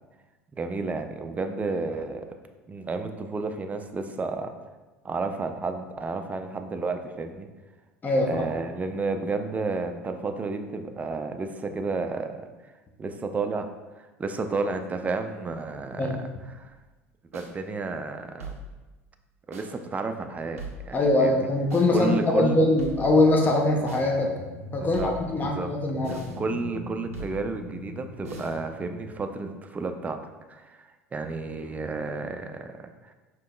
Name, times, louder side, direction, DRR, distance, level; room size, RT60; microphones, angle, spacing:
voice 1, 0.5-2.3 2.7-4.5 5.0-7.5 8.3-12.7 13.0-13.7 14.0-16.0 16.5-16.7 17.3-18.5 19.5-21.5 21.9-22.6 24.8-25.1 25.4-25.7 26.1-30.2 30.5-33.1, right 3 dB, 20° right, 7 dB, 0.4 m, -31 dB
voice 2, 8.0-8.5 16.0-16.2 20.9-24.3 24.7-26.2, left 2 dB, 25° left, 0 dB, 0.6 m, -22 dB
sound 1, 17.3-17.5 18.4-18.8 19.5-19.7 20.6-21.0 21.7-21.9 22.8-23.2 23.9-24.1 24.9-25.3 26.0-26.4 27.1-27.5 28.2-28.6, right 3 dB, 80° right, 0.5 m, -40 dB
sound 2, 21.3-29.3, left 2 dB, 90° left, 0.7 m, -43 dB
5.1 x 2.9 x 2.2 m, 1.2 s
figure-of-eight pair, 70°, 8 cm